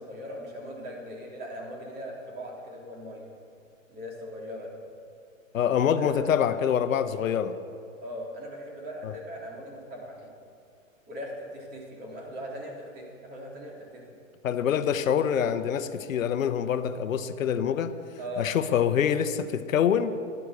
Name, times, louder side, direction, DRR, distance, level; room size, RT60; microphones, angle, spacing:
voice 1, 0.0-3.3 3.9-4.8 5.9-6.2 8.0-10.3 11.1-14.0 18.2-18.5, equal, 25° right, -2 dB, 3.3 m, -39 dB
voice 2, 5.5-7.5 9.0-9.1 14.4-17.9 18.4-20.1, left 8 dB, 75° left, 11 dB, 0.9 m, -25 dB
11.5 x 11.5 x 6.6 m, 2.4 s
hypercardioid pair, 135°, 40 cm